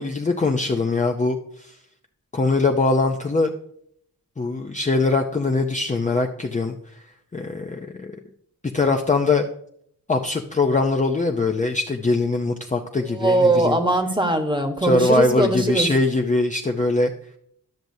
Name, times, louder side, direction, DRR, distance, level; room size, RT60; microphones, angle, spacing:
voice 1, 0.0-1.4 2.3-3.5 4.4-6.8 7.3-8.2 8.7-9.4 10.1-13.8 14.8-17.1, left 3 dB, 20° left, 2 dB, 0.5 m, -22 dB
voice 2, 13.1-15.9, right 2 dB, 15° right, 5 dB, 1.2 m, -21 dB
12.0 x 6.1 x 2.7 m, 0.68 s
wide cardioid pair, 70°, 36 cm